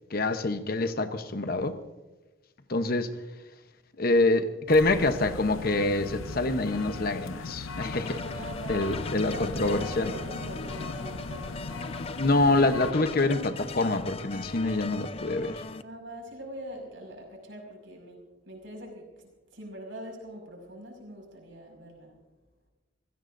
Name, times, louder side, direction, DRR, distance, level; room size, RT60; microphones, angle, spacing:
voice 1, 0.1-1.8 2.7-3.1 4.0-8.2 8.7-10.1 12.1-15.7, left 2 dB, 45° left, 0.9 m, -26 dB
sound 1, 4.7-12.9, left 3 dB, 80° left, 0.7 m, -38 dB
sound 2, 7.8-15.8, left 3 dB, 30° left, 0.5 m, -39 dB
voice 2, 8.1-8.9 9.3-11.9 15.8-22.1, equal, 65° right, 5.5 m, -43 dB
28.0 x 16.0 x 2.6 m
head